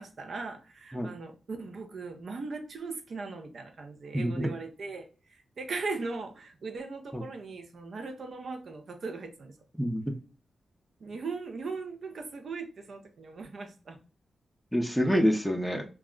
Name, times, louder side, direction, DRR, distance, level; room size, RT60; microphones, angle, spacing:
voice 1, 0.0-9.6 11.0-14.0, right 4 dB, 65° right, 5 dB, 0.5 m, -39 dB
voice 2, 4.1-4.5 7.1-7.2 9.8-10.0 14.7-15.8, equal, ahead, 4 dB, 0.5 m, -27 dB
2.3 x 2.0 x 3.6 m, 0.35 s
cardioid pair, 65°, 0 cm